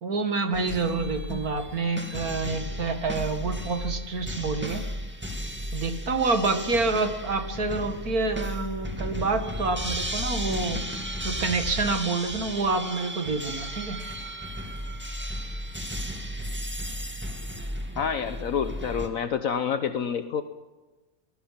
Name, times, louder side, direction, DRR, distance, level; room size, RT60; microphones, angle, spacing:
voice 1, 0.0-4.8 5.7-14.0, right 3 dB, 85° right, 7 dB, 2.5 m, -28 dB
sound 1, 0.5-19.1, equal, 5° right, 2.2 m, -34 dB
voice 2, 17.9-20.4, left 7 dB, 70° left, 9 dB, 1.4 m, -28 dB
23.5 x 20.5 x 5.9 m, 1.2 s
omnidirectional pair, 1.5 m